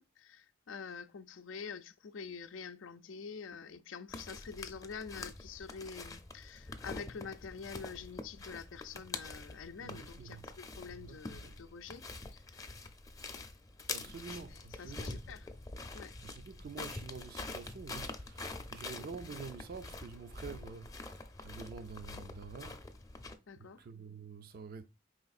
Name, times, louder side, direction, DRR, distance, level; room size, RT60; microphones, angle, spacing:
voice 1, 0.0-12.1 12.3-12.4 14.0-14.1 14.8-15.5 15.9-16.1 23.5-23.8, left 5 dB, 85° left, 0.5 m, -46 dB
sound 1, 4.1-23.4, left 3 dB, 20° left, 0.5 m, -46 dB
voice 2, 9.8-10.5 10.9-11.6 13.9-15.3 16.2-22.9 23.6-24.9, right 5 dB, 50° right, 0.4 m, -48 dB
4.9 x 3.4 x 2.3 m
head